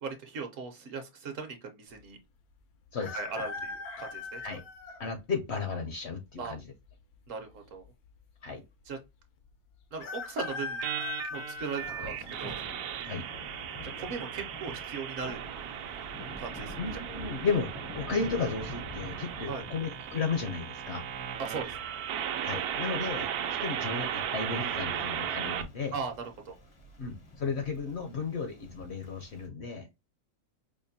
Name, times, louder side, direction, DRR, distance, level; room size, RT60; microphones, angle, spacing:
voice 1, 0.0-2.2 3.1-4.6 6.4-6.5 7.3-7.8 8.9-9.0 9.9-10.8 11.3-12.6 13.9-15.4 16.4-17.0 19.4-19.7 21.4-21.8 25.9-26.5, right 4 dB, 60° right, 5 dB, 1.1 m, -38 dB
sound 1, 3.0-5.0 5.7-5.8 6.9-7.5 7.8-7.9 8.1-8.2 10.0-12.6 13.1-13.5 14.7-15.0 15.3-15.4 15.9-16.3 16.8-16.9, left 4 dB, 85° left, 1.2 m, -40 dB
voice 2, 5.0-6.6 8.4-8.6 13.0-13.3 16.8-21.0 22.4-23.3 23.6-25.9 27.0-29.9, left 5 dB, 60° left, 6 dB, 0.7 m, -34 dB
sound 2, 10.8-25.6, right 9 dB, 85° right, 1.1 m, -36 dB
Thunder / Rain, 11.7-29.5, left 1 dB, 45° left, 0.4 m, -48 dB
5.0 x 2.2 x 2.6 m, 0.23 s
omnidirectional pair, 1.6 m